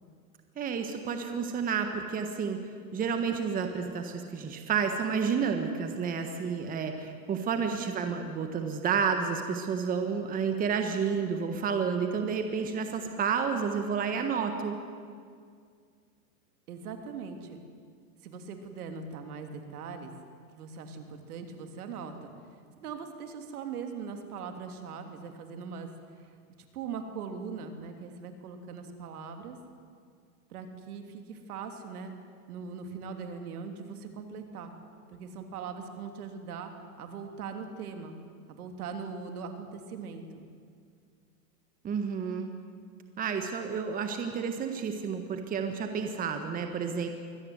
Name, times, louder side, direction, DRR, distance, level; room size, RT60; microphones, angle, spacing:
voice 1, 0.6-2.6 2.9-14.7 41.8-42.5 43.2-47.1, right 6 dB, 20° right, 6 dB, 1.5 m, -30 dB
voice 2, 16.7-17.6 18.2-20.1 20.5-22.3 22.7-25.9 26.2-26.3 26.7-29.6 30.5-32.1 32.5-34.7 35.1-36.7 37.0-38.2 38.5-40.4, right 5 dB, 70° right, 6 dB, 3.2 m, -40 dB
24.0 x 18.0 x 8.2 m, 2.1 s
supercardioid pair, 145°, 46 cm